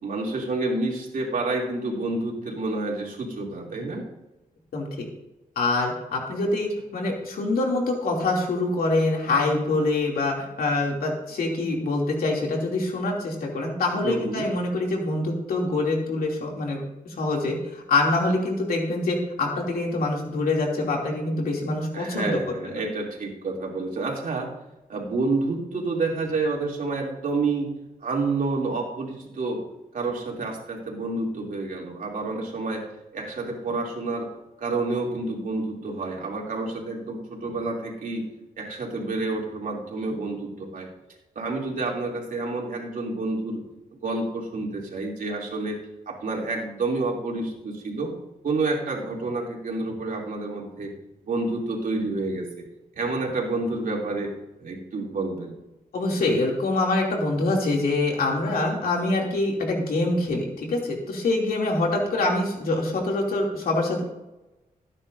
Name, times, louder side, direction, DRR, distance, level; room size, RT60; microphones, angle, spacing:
voice 1, 0.0-4.0 14.0-14.5 21.9-24.5 24.9-27.7 28.0-29.6 29.9-32.8 33.1-34.3 34.6-38.3 38.6-40.9 41.3-43.6 44.0-45.8 46.1-48.1 48.4-50.9 51.2-52.6 53.0-54.3 54.6-55.6, right 3 dB, 65° right, -1 dB, 2.9 m, -29 dB
voice 2, 4.7-5.1 5.6-22.8 55.9-64.0, left 2 dB, 90° left, -1 dB, 2.7 m, -25 dB
17.5 x 9.8 x 2.7 m, 0.96 s
cardioid pair, 90°, 15 cm